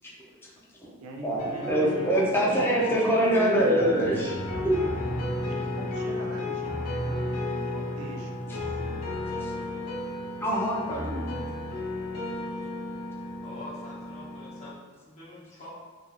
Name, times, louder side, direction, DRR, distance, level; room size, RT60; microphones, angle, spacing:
voice 1, 0.0-0.5 0.8-0.9 1.2-4.4 4.6-4.8 9.4-9.5 10.4-11.4, right 1 dB, 10° left, -5 dB, 0.4 m, -25 dB
voice 2, 1.0-2.1 2.5-3.1 5.8-9.0, right 2 dB, 75° right, 1 dB, 0.4 m, -42 dB
sound 1, 1.4-14.7, left 2 dB, 80° left, 0.6 m, -33 dB
voice 3, 13.4-15.7, left 1 dB, 30° left, -7 dB, 0.8 m, -45 dB
2.9 x 2.4 x 2.3 m, 1.4 s
head